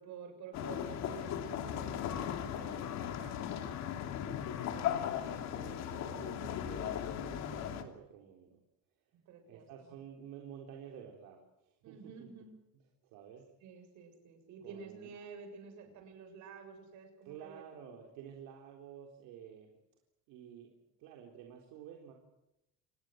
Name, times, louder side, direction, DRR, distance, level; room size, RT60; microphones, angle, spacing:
voice 1, 0.0-3.4 4.4-5.0 9.3-10.0 11.8-12.6 13.6-17.6, right 6 dB, 55° right, 6 dB, 7.4 m, -51 dB
sound 1, 0.5-7.8, left 9 dB, 50° left, 2.9 m, -37 dB
voice 2, 4.2-8.6 9.5-12.2 13.0-13.5 14.6-15.1 17.2-19.7 20.3-20.7 21.0-22.1, right 8 dB, 75° right, 1 dB, 4.0 m, -51 dB
28.0 x 20.5 x 7.9 m, 0.88 s
cardioid pair, 155°, 34 cm